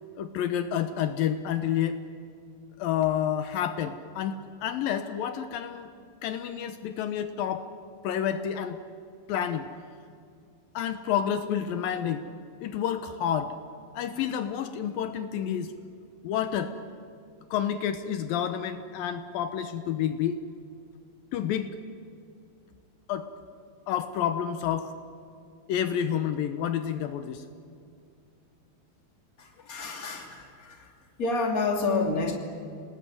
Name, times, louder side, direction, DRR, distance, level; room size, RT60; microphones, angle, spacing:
voice 1, 0.2-2.0 2.8-5.9 6.2-7.7 8.0-8.8 9.3-9.7 10.7-12.3 12.6-13.6 13.9-15.7 16.2-16.7 17.5-20.4 21.3-21.7 23.1-23.3 23.9-24.9 25.7-27.4, left 9 dB, 80° left, 10 dB, 2.6 m, -29 dB
voice 2, 29.4-30.9 31.2-32.4, left 3 dB, 25° left, 3 dB, 2.8 m, -29 dB
28.5 x 19.5 x 9.3 m, 2.3 s
omnidirectional pair, 4.3 m